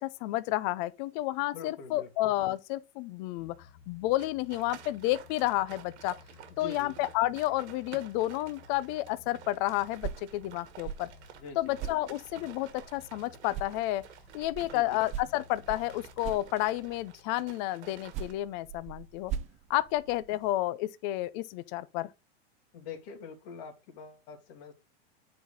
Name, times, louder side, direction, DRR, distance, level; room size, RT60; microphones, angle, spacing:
voice 1, 0.0-3.5 3.9-6.2 6.6-11.1 11.6-14.0 14.3-19.3 19.7-22.1, left 16 dB, 45° left, 0.6 m, -31 dB
voice 2, 1.5-2.1 6.5-6.9 11.3-11.7 14.6-15.0 22.7-24.7, left 6 dB, 60° left, 2.6 m, -44 dB
sound 1, 3.4-17.6, left 6 dB, 30° left, 1.5 m, -57 dB
sound 2, 4.2-18.3, right 9 dB, 85° right, 1.7 m, -52 dB
sound 3, 9.8-13.2 13.5-17.0 17.9-20.5, right 8 dB, 20° right, 0.4 m, -42 dB
9.1 x 4.2 x 4.0 m
supercardioid pair, 145°, 33 cm